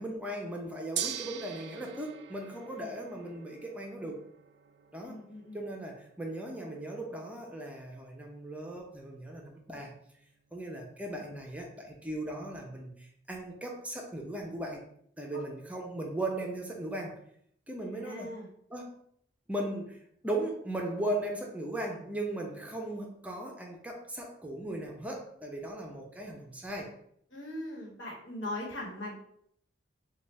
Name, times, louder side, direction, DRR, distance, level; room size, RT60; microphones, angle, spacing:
voice 1, 0.0-4.2 4.9-5.2 5.5-9.9 10.5-14.8 15.2-17.2 17.7-18.3 18.7-18.9 19.5-26.9, right 1 dB, 10° right, 1 dB, 0.5 m, -37 dB
Gong, 1.0-11.2, right 10 dB, 65° right, 0.3 m, -45 dB
voice 2, 5.1-5.6 15.3-15.4 18.0-18.5 27.3-29.2, left 1 dB, 85° left, -3 dB, 1.3 m, -40 dB
4.1 x 2.3 x 3.3 m, 0.68 s
head